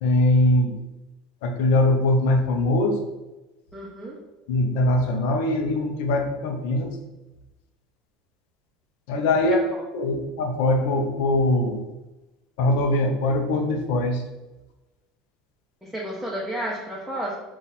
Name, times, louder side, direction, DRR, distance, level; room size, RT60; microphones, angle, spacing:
voice 1, 0.0-0.8 1.4-3.0 4.5-6.9 9.1-9.6 9.9-11.8 12.6-14.2, left 1 dB, 75° left, 4 dB, 0.6 m, -22 dB
voice 2, 3.7-4.2 9.4-9.8 15.8-17.4, right 1 dB, 5° right, -5 dB, 0.8 m, -32 dB
4.0 x 2.4 x 4.1 m, 1.1 s
supercardioid pair, 105°, 0 cm